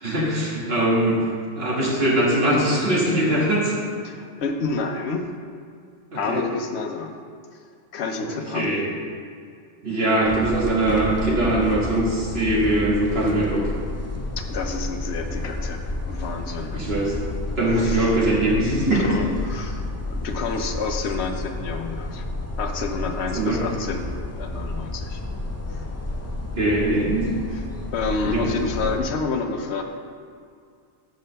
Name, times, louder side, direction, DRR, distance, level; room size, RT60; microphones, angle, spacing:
voice 1, 0.0-1.2 1.5-3.7 6.1-6.4 8.2-8.3 8.5-8.9 9.8-13.7 16.7-17.1 17.6-19.0 23.3-23.6 26.5-27.3 28.2-28.5 28.8-28.9, right 1 dB, 60° right, -4 dB, 1.8 m, -21 dB
voice 2, 4.0-5.3 6.1-7.2 7.9-8.7 14.4-16.8 17.7-18.1 18.9-22.2 22.6-25.2 25.7-25.8 26.1-26.3 27.5-27.6 27.9-29.8, left 4 dB, 70° left, 4 dB, 1.0 m, -29 dB
sound 1, 10.2-29.0, left 2 dB, 20° left, 0.4 m, -31 dB
6.4 x 4.9 x 6.5 m, 2.2 s
omnidirectional pair, 1.2 m